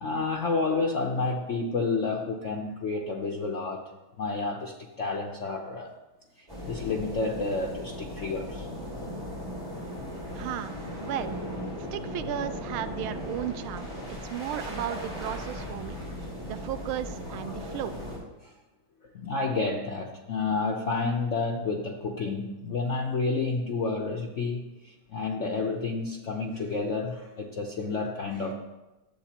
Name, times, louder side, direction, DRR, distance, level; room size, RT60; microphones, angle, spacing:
voice 1, 0.0-3.9 4.2-5.9 6.4-8.7 12.8-12.9 17.7-17.8 18.4-18.5 19.1-28.5, left 3 dB, 65° left, 0 dB, 0.7 m, -30 dB
sound 1, 6.5-18.2, equal, 15° right, 3.3 m, -37 dB
voice 2, 10.4-10.7 11.0-11.4 11.9-16.0 16.4-17.9, right 11 dB, 85° right, 12 dB, 1.4 m, -35 dB
12.0 x 8.1 x 2.9 m, 1.0 s
omnidirectional pair, 2.3 m